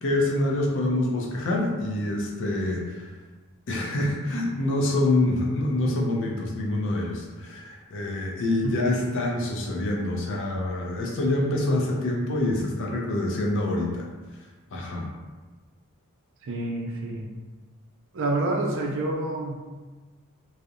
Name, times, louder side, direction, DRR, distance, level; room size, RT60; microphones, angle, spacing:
voice 1, 0.0-3.1 3.7-14.1 14.7-15.1, left 1 dB, 60° left, 0 dB, 0.4 m, -26 dB
voice 2, 16.4-17.3 18.1-19.5, right 2 dB, 60° right, 0 dB, 0.4 m, -28 dB
2.7 x 2.0 x 2.4 m, 1.3 s
head